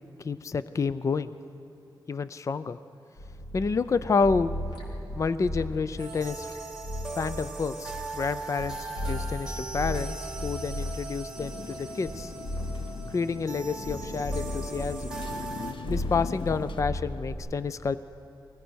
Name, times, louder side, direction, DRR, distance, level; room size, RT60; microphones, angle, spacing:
voice 1, 0.2-1.3 2.1-2.8 3.5-4.5 5.2-6.5 7.2-12.3 13.1-15.1 15.9-18.0, left 4 dB, 40° left, 14 dB, 0.4 m, -29 dB
sound 1, 3.2-8.7 8.9-12.1 12.4-13.9 14.2-15.6 15.8-17.3, left 1 dB, 70° left, 3.6 m, -36 dB
sound 2, 6.0-15.7, right 3 dB, 5° right, 2.8 m, -39 dB
Motorcycle, 11.3-16.8, left 5 dB, 85° left, 0.7 m, -41 dB
23.0 x 18.5 x 6.3 m, 2.9 s
wide cardioid pair, 165°, 8 cm